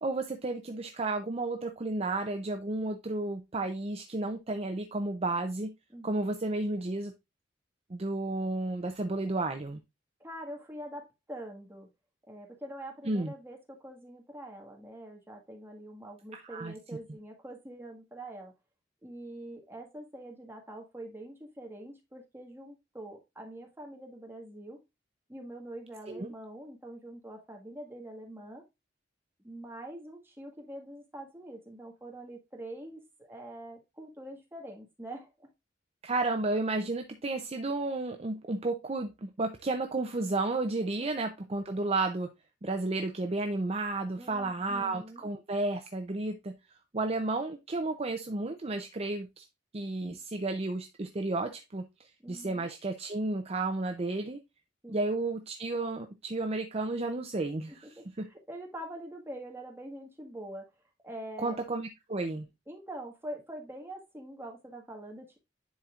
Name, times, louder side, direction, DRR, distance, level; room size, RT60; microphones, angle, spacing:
voice 1, 0.0-5.7 6.0-7.1 7.9-9.8 13.0-13.3 16.3-16.7 26.1-26.3 36.0-42.3 42.6-46.5 46.9-49.4 49.7-54.4 54.9-58.3 61.4-62.5, right 2 dB, 35° right, 0.6 m, -32 dB
voice 2, 5.9-6.2 10.2-11.9 12.3-18.5 19.0-24.8 25.3-28.6 29.4-33.0 33.3-35.5 44.2-45.2 52.2-52.7 54.8-55.0 57.7-58.0 58.3-60.7 61.0-61.6 62.7-65.4, right 1 dB, 10° right, 1.7 m, -44 dB
10.5 x 4.3 x 2.4 m
head